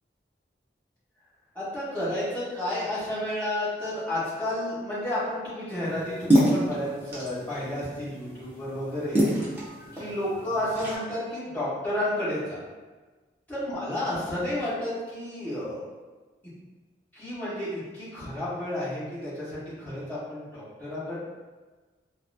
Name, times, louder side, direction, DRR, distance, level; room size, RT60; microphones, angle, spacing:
voice 1, 1.5-9.3 9.9-12.6 13.5-15.8 17.1-21.2, left 1 dB, 10° left, -13 dB, 1.5 m, -31 dB
sound 1, 5.8-10.9, equal, 10° right, 0.7 m, -28 dB
4.1 x 2.1 x 2.6 m, 1.3 s
head